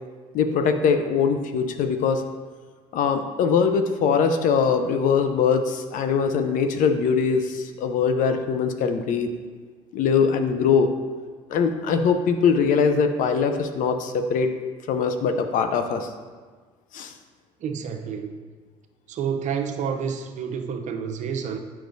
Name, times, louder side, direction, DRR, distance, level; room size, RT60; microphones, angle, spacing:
voice 1, 0.3-2.2 2.9-9.3 9.9-10.9 11.5-14.5 14.9-16.1 16.9-17.1, left 6 dB, 60° left, 7 dB, 0.6 m, -22 dB
voice 2, 17.6-18.5 19.1-21.6, right 7 dB, 55° right, 5 dB, 0.7 m, -29 dB
8.4 x 5.9 x 2.6 m, 1.5 s
supercardioid pair, 85°, 15 cm